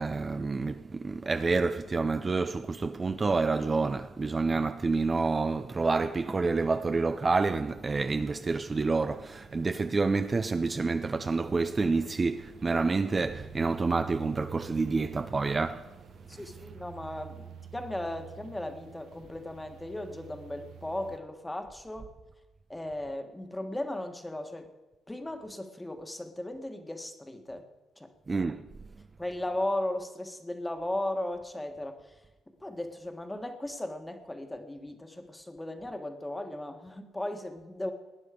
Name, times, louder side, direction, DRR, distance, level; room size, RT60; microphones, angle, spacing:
voice 1, 0.0-15.9 16.3-16.4 28.3-28.6, right 3 dB, 30° right, 0.5 m, -28 dB
sound 1, 7.9-21.2, right 8 dB, 75° right, 1.1 m, -49 dB
voice 2, 16.3-22.1 22.7-24.7 25.1-27.7 28.0-28.1 29.2-32.1 32.6-37.9, left 1 dB, 10° left, 1.5 m, -36 dB
18.5 x 9.7 x 5.1 m
cardioid pair, 90°, 0 cm